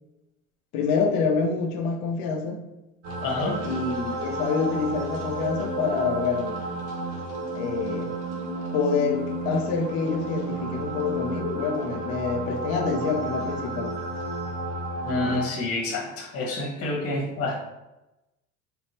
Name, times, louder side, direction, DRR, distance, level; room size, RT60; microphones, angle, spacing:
voice 1, 0.7-2.6 3.6-6.6 7.5-8.1 8.7-13.9, left 5 dB, 50° left, 4 dB, 0.8 m, -26 dB
sound 1, 3.0-15.4, right 2 dB, 55° right, 1.3 m, -32 dB
voice 2, 3.2-3.6 15.0-17.6, left 2 dB, 35° left, 0 dB, 1.5 m, -28 dB
4.2 x 3.7 x 3.0 m, 0.96 s
figure-of-eight pair, 70°, 42 cm